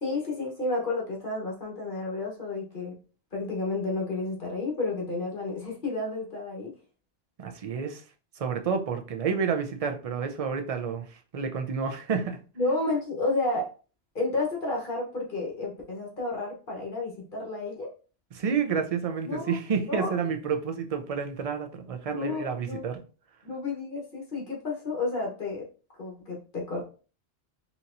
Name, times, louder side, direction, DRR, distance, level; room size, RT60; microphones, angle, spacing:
voice 1, 0.0-3.0 3.3-6.7 12.6-13.7 14.1-17.9 19.2-19.6 19.9-20.2 22.1-22.8 23.4-25.7 26.0-26.8, left 2 dB, 50° left, 1.2 m, -31 dB
voice 2, 7.4-8.0 8.4-12.4 18.3-23.0, right 6 dB, 45° right, 0.5 m, -30 dB
4.1 x 2.9 x 2.5 m
omnidirectional pair, 1.1 m